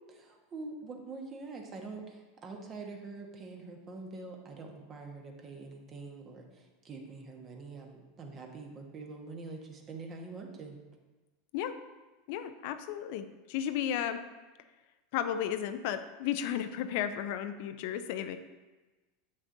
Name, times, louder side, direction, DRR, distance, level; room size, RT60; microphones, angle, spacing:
voice 1, 0.1-10.8, right 3 dB, 35° right, 2 dB, 1.2 m, -45 dB
voice 2, 12.3-14.2 15.1-18.4, left 10 dB, 60° left, 10 dB, 0.4 m, -34 dB
7.6 x 6.0 x 2.7 m, 1.2 s
hypercardioid pair, 85°, 0 cm